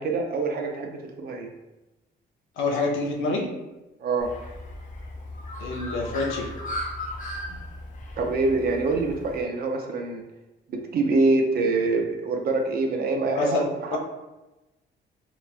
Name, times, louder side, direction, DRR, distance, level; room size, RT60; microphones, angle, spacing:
voice 1, 0.0-1.5 4.0-4.3 8.2-10.2 10.7-14.0, right 3 dB, 50° right, 2 dB, 0.5 m, -25 dB
voice 2, 2.6-3.5 5.6-6.5 7.5-7.6 13.3-13.6 13.9-14.0, left 3 dB, 85° left, 1 dB, 0.5 m, -27 dB
Bird, 4.2-9.4, left 1 dB, 40° left, 0.5 m, -36 dB
2.9 x 2.2 x 2.4 m, 1.0 s
cardioid pair, 90°, 20 cm